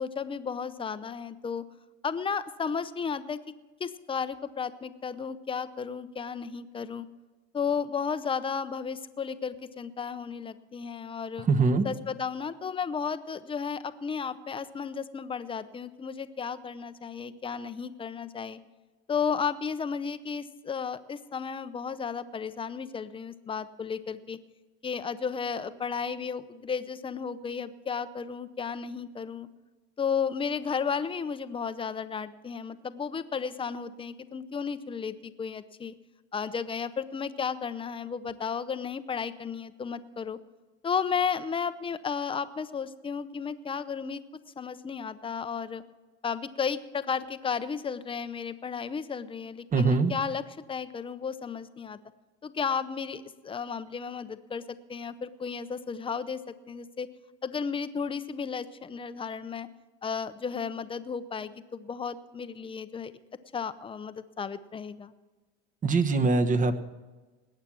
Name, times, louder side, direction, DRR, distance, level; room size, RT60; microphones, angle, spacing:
voice 1, 0.0-1.6 2.0-3.5 3.8-7.1 7.5-11.5 11.8-18.6 19.1-24.4 24.8-29.5 30.0-35.9 36.3-40.4 40.8-44.2 44.6-45.8 46.2-50.4 50.7-52.0 52.4-54.6 54.9-56.4 56.7-57.1 57.4-59.7 60.0-63.1 63.5-65.1, left 6 dB, 15° left, 12 dB, 0.7 m, -33 dB
voice 2, 11.5-11.8 49.7-50.1 65.8-66.8, right 3 dB, 25° right, 9 dB, 1.1 m, -23 dB
20.0 x 8.7 x 6.2 m, 1.3 s
supercardioid pair, 125°, 32 cm